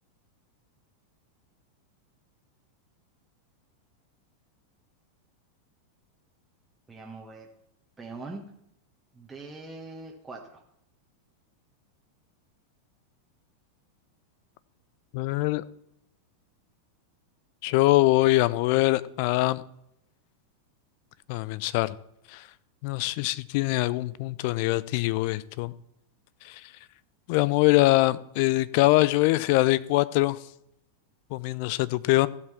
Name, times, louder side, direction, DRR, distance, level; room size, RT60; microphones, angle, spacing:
voice 1, 6.9-7.5 8.0-8.5 9.1-10.6, right 3 dB, 10° right, 1.4 m, -42 dB
voice 2, 15.1-15.6 17.6-19.6 21.3-21.9 22.3-22.5 22.8-25.7 26.4-26.7 27.3-30.4 31.3-32.3, left 19 dB, 45° left, 0.5 m, -23 dB
15.5 x 5.2 x 7.0 m
figure-of-eight pair, 90°, 0 cm